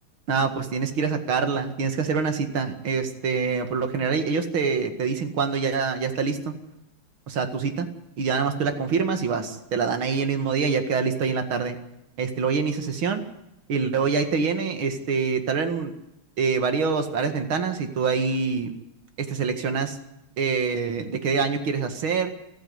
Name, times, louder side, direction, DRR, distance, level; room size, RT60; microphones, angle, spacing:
voice 1, 0.3-6.5 7.3-7.9 8.2-11.8 12.2-13.2 13.7-15.9 16.4-18.7 19.2-20.0 20.4-22.3, right 5 dB, 70° right, 7 dB, 2.7 m, -25 dB
28.5 x 9.6 x 9.7 m, 0.89 s
omnidirectional pair, 2.4 m